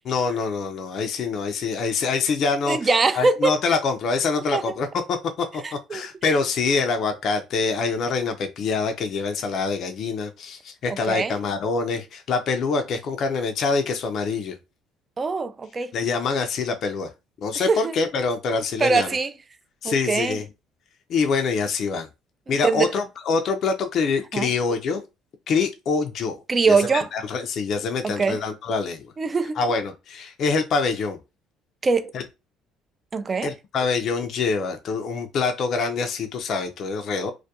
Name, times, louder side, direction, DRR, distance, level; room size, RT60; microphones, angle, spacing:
voice 1, 0.1-2.9 3.1-14.6 15.9-17.1 17.4-19.1 19.8-20.4 21.1-22.1 22.5-25.0 25.5-26.4 26.7-29.1 29.6-31.2 32.1-32.2 33.4-37.3, left 4 dB, 55° left, 0.4 m, -25 dB
voice 2, 2.7-3.6 4.5-4.8 5.6-6.1 10.9-11.4 15.2-15.9 17.5-17.9 18.8-19.3 19.8-20.4 22.5-22.9 24.3-24.5 26.5-27.1 28.0-28.4 29.2-29.6 31.8-32.1 33.1-33.5, right 4 dB, 30° right, 0.3 m, -23 dB
2.3 x 2.1 x 2.7 m
supercardioid pair, 90°, 0 cm